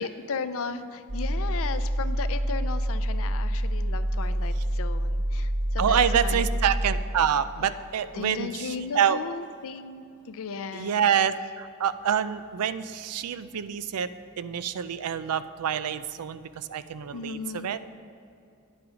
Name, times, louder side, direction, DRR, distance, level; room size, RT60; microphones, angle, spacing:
voice 1, 0.0-6.4 8.2-11.1 17.1-17.8, left 5 dB, 65° left, 11 dB, 0.5 m, -36 dB
sound 1, 1.1-7.0, right 1 dB, 20° right, 0.6 m, -27 dB
voice 2, 5.8-9.2 10.7-14.1 14.4-17.8, right 8 dB, 85° right, 14 dB, 0.4 m, -27 dB
10.0 x 8.8 x 5.0 m, 2.5 s
head